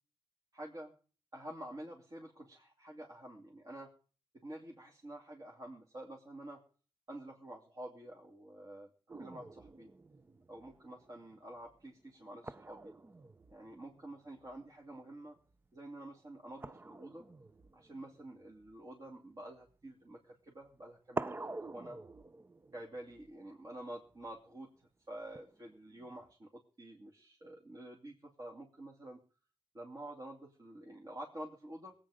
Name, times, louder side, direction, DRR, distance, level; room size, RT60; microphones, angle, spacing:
voice 1, 0.5-0.9 1.3-3.9 4.3-6.6 7.1-8.9 9.2-9.9 10.5-12.9 13.5-15.4 15.7-17.3 17.7-22.0 22.7-29.2 29.7-31.9, right 1 dB, 40° right, -1 dB, 2.8 m, -49 dB
sound 1, 9.1-15.0 15.2-15.7 16.6-19.8 20.7-20.8 21.1-24.4 25.3-26.3, right 3 dB, 25° right, 0.6 m, -48 dB
21.0 x 8.9 x 5.1 m, 0.40 s
cardioid pair, 85°, 9 cm